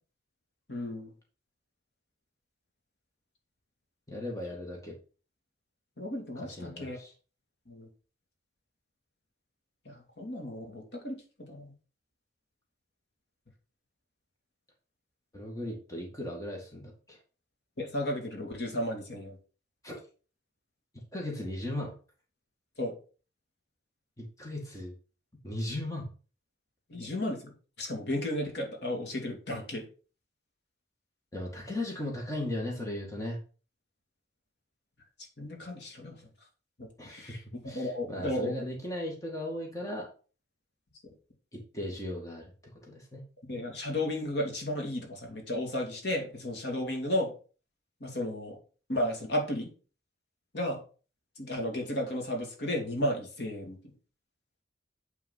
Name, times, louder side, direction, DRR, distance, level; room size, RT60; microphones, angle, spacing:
voice 1, 0.7-1.1 6.0-7.0 7.7-7.9 9.9-11.2 11.5-11.7 17.8-19.4 22.8-22.9 26.9-29.8 35.4-36.2 36.8-38.6 43.5-47.3 48.0-48.6 48.9-49.7 50.5-50.8 51.4-53.8, left 1 dB, 65° left, 1 dB, 2.6 m, -34 dB
voice 2, 4.1-5.0 6.4-7.1 15.3-17.2 19.8-19.9 20.9-21.9 24.2-24.9 25.4-26.1 31.3-33.4 37.0-37.4 37.6-40.1 41.5-42.5 42.9-43.2, left 1 dB, 20° left, -1 dB, 2.1 m, -37 dB
9.2 x 4.7 x 5.6 m, 0.37 s
head